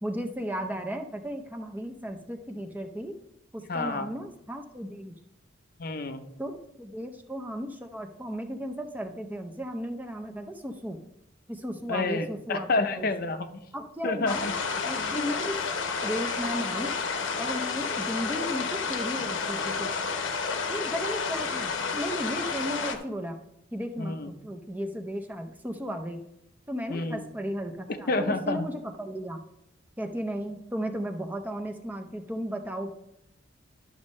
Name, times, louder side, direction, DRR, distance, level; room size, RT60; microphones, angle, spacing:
voice 1, 0.0-3.2 3.5-5.1 6.4-11.0 11.5-13.1 13.7-14.5 14.9-15.6 16.0-17.0 17.4-20.0 20.7-23.4 23.7-26.2 26.7-29.4 30.0-32.9, equal, 10° right, 4 dB, 0.5 m, -35 dB
voice 2, 3.7-4.1 5.8-6.2 11.9-13.6 14.0-14.5 15.1-15.3 24.0-24.3 26.9-27.2 28.1-28.7, left 3 dB, 50° left, 8 dB, 0.6 m, -29 dB
sound 1, 14.3-22.9, left 5 dB, 85° left, 0.9 m, -30 dB
11.5 x 6.3 x 3.2 m, 0.83 s
head